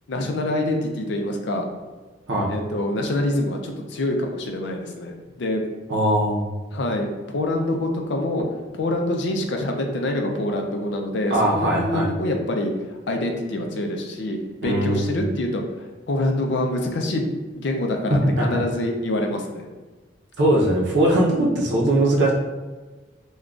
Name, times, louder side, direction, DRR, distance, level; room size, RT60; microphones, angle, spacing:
voice 1, 0.1-1.7 2.5-5.6 6.7-8.5 8.7-12.7 13.1-14.4 14.6-15.6 16.1-19.7, left 1 dB, 70° left, 3 dB, 0.4 m, -25 dB
voice 2, 5.9-6.5 11.3-12.1 14.6-15.2 18.1-18.6 20.4-22.3, right 1 dB, 65° right, -2 dB, 0.6 m, -20 dB
3.7 x 2.2 x 2.3 m, 1.3 s
head